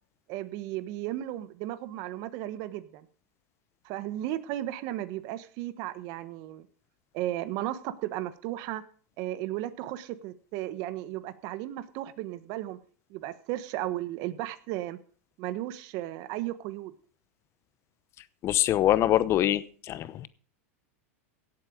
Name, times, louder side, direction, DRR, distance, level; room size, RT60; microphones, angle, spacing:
voice 1, 0.3-3.1 3.8-6.7 7.1-8.8 9.2-12.8 13.1-15.0 15.4-16.9, right 14 dB, 50° right, 1.2 m, -35 dB
voice 2, 18.4-20.3, left 13 dB, 35° left, 0.8 m, -24 dB
17.0 x 8.0 x 5.0 m
supercardioid pair, 130°, 8 cm